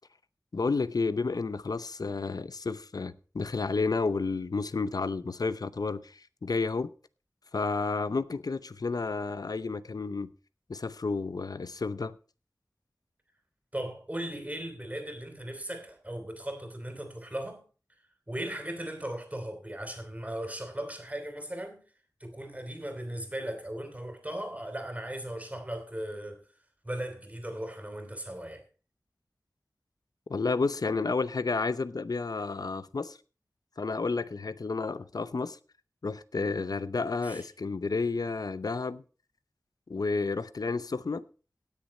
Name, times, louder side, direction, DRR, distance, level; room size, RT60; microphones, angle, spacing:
voice 1, 0.5-6.9 7.5-10.3 10.7-12.2 30.3-33.2 33.8-35.6 36.0-39.0 39.9-41.2, left 4 dB, 70° left, 0.6 m, -31 dB
voice 2, 13.7-17.6 18.3-21.8 22.2-26.4 26.8-28.6 37.2-37.4, right 1 dB, 20° right, 3.1 m, -37 dB
17.5 x 6.6 x 4.2 m
wide cardioid pair, 65°, 7 cm